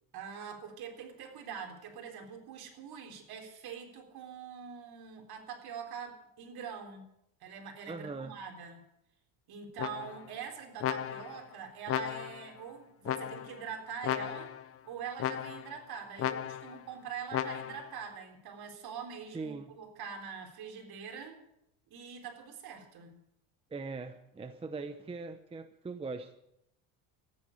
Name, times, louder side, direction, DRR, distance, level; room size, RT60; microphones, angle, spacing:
voice 1, 0.1-7.1 7.4-8.8 9.5-14.5 14.8-21.4 21.9-23.2, right 7 dB, 50° right, 3 dB, 3.7 m, -44 dB
voice 2, 7.9-8.4 19.3-19.7 23.7-26.4, right 4 dB, 10° right, 8 dB, 0.6 m, -41 dB
sound 1, 9.8-10.3 10.8-11.4 11.9-12.5 13.0-13.6 14.0-14.7 15.2-15.8 16.2-16.8 17.3-17.9, left 10 dB, 30° left, 0.6 m, -35 dB
14.0 x 9.7 x 9.7 m, 0.80 s
cardioid pair, 145°, 48 cm